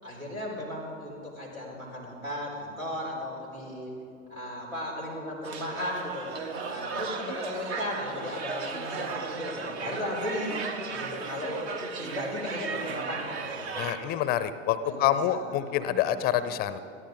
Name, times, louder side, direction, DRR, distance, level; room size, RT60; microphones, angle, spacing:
voice 1, 0.0-3.9 4.3-6.3 6.6-9.1 9.4-10.6 10.9-11.6 12.0-14.4 14.8-16.0, left 1 dB, 85° right, -3 dB, 4.6 m, -36 dB
sound 1, 5.4-14.2, right 5 dB, 55° right, 1.4 m, -35 dB
voice 2, 13.8-16.8, left 11 dB, 25° left, 13 dB, 0.5 m, -27 dB
21.5 x 14.5 x 3.8 m, 2.8 s
figure-of-eight pair, 85°, 39 cm